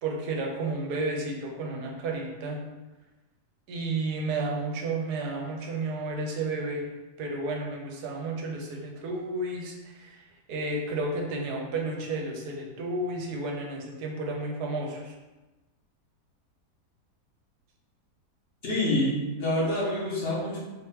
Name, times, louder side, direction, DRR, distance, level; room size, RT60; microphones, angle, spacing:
voice 1, 0.0-2.6 3.7-6.9 7.2-10.2 10.5-15.1, right 2 dB, 80° right, 0 dB, 1.3 m, -32 dB
voice 2, 18.6-20.6, left 1 dB, 40° left, -6 dB, 1.4 m, -27 dB
4.1 x 2.9 x 3.5 m, 1.1 s
omnidirectional pair, 1.7 m